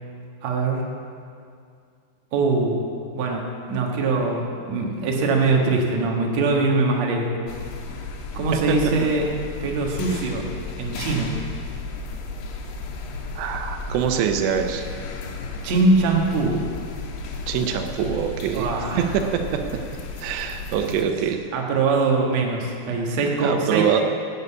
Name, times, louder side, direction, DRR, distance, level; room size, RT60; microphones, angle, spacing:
voice 1, 0.4-0.8 2.3-2.8 3.2-7.4 8.3-9.3 9.6-10.5 10.8-11.3 15.6-16.6 18.5-19.1 21.5-24.0, right 3 dB, 55° right, 0 dB, 2.2 m, -22 dB
sound 1, 7.5-21.1, left 3 dB, 80° left, 3.0 m, -34 dB
voice 2, 13.4-14.9 17.5-18.7 19.0-19.6 20.2-21.4 23.4-24.0, right 8 dB, 85° right, 6 dB, 3.1 m, -24 dB
12.0 x 8.2 x 8.3 m, 2.3 s
omnidirectional pair, 4.9 m